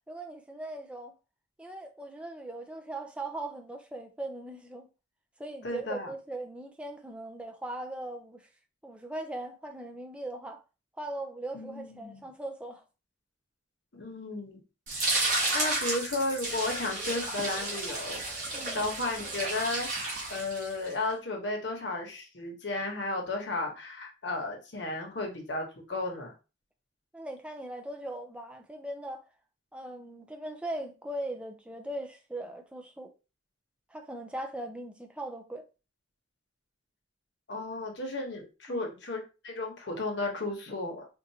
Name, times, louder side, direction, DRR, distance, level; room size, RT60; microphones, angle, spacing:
voice 1, 0.1-1.1 1.6-4.9 5.4-8.5 8.8-10.6 11.0-12.8 18.5-18.8 27.1-29.2 29.7-33.1 33.9-35.7 38.7-38.9, right 1 dB, 5° right, 0.4 m, -39 dB
voice 2, 5.6-6.1 11.5-12.3 13.9-14.6 14.9-15.1 15.5-18.4 18.7-26.3 37.5-41.1, left 2 dB, 65° left, 1.0 m, -34 dB
sound 1, 14.9-20.9, right 2 dB, 40° right, 1.5 m, -32 dB
4.5 x 2.5 x 2.7 m
head